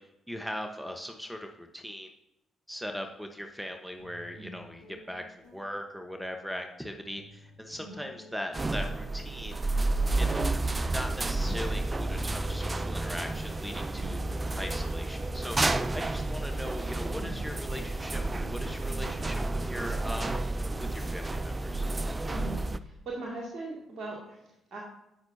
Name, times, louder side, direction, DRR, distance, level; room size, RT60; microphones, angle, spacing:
voice 1, 0.3-2.1 2.7-9.5 10.1-10.4 10.9-14.2 14.5-18.2 18.5-20.4 20.8-21.8, equal, 5° right, 5 dB, 1.1 m, -39 dB
sound 1, 3.4-3.5 4.0-19.9, left 1 dB, 85° left, 1.3 m, -55 dB
sound 2, 8.5-22.8, right 2 dB, 25° right, 0.5 m, -31 dB
voice 2, 13.9-14.4 17.1-17.3 22.3-24.8, right 2 dB, 50° right, -4 dB, 2.4 m, -41 dB
16.0 x 6.0 x 2.8 m, 0.86 s
hypercardioid pair, 45°, 0 cm